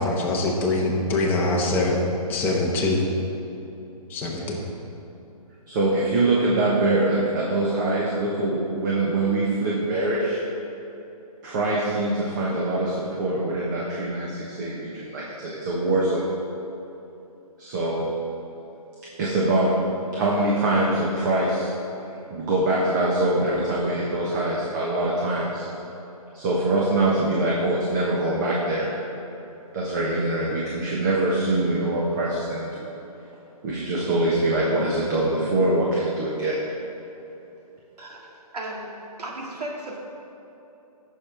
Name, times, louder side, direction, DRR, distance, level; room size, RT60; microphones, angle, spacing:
voice 1, 0.0-2.0 2.3-3.0 4.1-4.4, left 2 dB, 10° left, -3 dB, 1.0 m, -23 dB
voice 2, 5.7-10.4 11.4-16.3 17.6-18.1 19.2-19.8 20.1-21.7 22.3-25.7 26.3-28.9 29.7-32.9 33.6-36.6, right 2 dB, 30° right, -4 dB, 1.3 m, -24 dB
voice 3, 38.0-40.0, right 1 dB, 85° right, -2 dB, 2.2 m, -35 dB
15.0 x 6.6 x 3.5 m, 2.9 s
hypercardioid pair, 160°, 20 cm